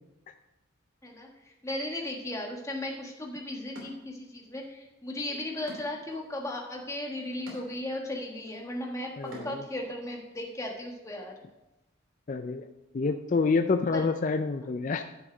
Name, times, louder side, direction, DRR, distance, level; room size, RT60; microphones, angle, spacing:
voice 1, 1.0-9.1 9.4-11.3 13.9-14.1, left 1 dB, 15° left, 0 dB, 1.3 m, -36 dB
sound 1, 2.9-3.0 3.7-4.7 5.0-9.8, equal, 70° right, 3.0 m, -49 dB
voice 2, 9.2-9.6 12.3-12.7 12.9-15.0, left 4 dB, 35° left, 7 dB, 0.4 m, -27 dB
11.0 x 6.5 x 5.0 m, 0.99 s
head